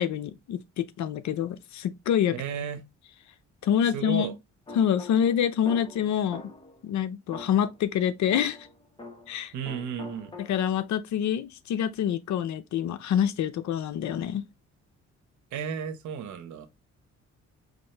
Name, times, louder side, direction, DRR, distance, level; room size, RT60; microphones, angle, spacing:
voice 1, 0.0-2.4 3.6-4.3 4.7-6.4 6.8-8.7 9.3-9.5 10.4-14.4, left 9 dB, 70° left, 0.6 m, -26 dB
voice 2, 2.3-2.9 3.9-4.3 9.5-10.3 15.5-16.7, right 7 dB, 75° right, 0.9 m, -33 dB
sound 1, 4.7-6.8 7.3-9.4 9.7-10.9, left 2 dB, 15° left, 1.2 m, -44 dB
5.1 x 2.6 x 3.2 m
cardioid pair, 90°, 30 cm